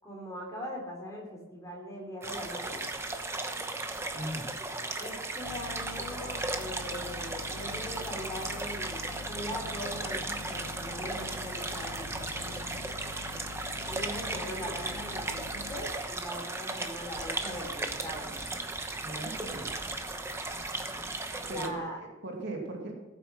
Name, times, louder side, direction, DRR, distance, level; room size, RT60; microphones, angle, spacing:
voice 1, 0.0-2.9 5.0-12.5 13.9-18.3 21.5-22.0 22.6-22.7, equal, 15° left, -1 dB, 3.5 m, -41 dB
sound 1, 2.2-21.7, right 2 dB, 10° right, 0.9 m, -36 dB
voice 2, 4.1-4.5 19.0-19.7 21.5-21.7 22.0-22.9, right 1 dB, 55° right, 1 dB, 2.4 m, -38 dB
sound 2, 5.4-15.9, left 4 dB, 85° left, 0.5 m, -45 dB
sound 3, 9.1-15.9, left 1 dB, 30° left, 3.5 m, -58 dB
16.0 x 9.0 x 6.3 m, 1.1 s
head